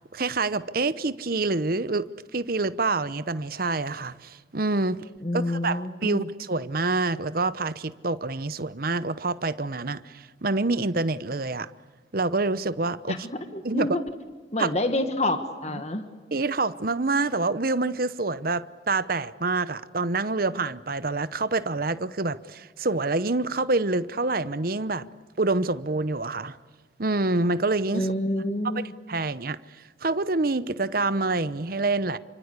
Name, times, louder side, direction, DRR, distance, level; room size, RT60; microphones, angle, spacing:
voice 1, 0.1-5.0 5.3-11.7 12.1-13.2 13.6-13.9 14.6-14.7 16.3-25.0 25.4-26.6 27.0-28.1 29.1-29.6 30.0-32.2, right 3 dB, 50° right, 0.9 m, -27 dB
voice 2, 5.2-6.3 13.1-13.2 13.5-14.0 14.5-16.1 27.9-28.9, left 1 dB, 35° left, 1.5 m, -28 dB
28.5 x 25.5 x 8.2 m
head